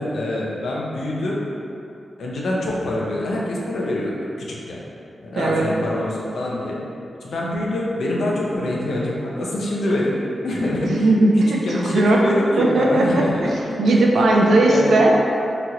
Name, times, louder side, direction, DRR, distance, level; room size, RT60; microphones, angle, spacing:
voice 1, 0.0-1.4 2.2-4.8 5.2-6.8 7.2-10.2 10.4-11.1 11.4-13.5 13.8-14.0 14.3-14.9, left 1 dB, 80° left, -4 dB, 0.5 m, -25 dB
voice 2, 5.3-5.7 10.8-13.2 13.8-15.2, right 2 dB, 85° right, -1 dB, 0.4 m, -17 dB
2.9 x 2.9 x 2.4 m, 2.7 s
cardioid pair, 80°, 0 cm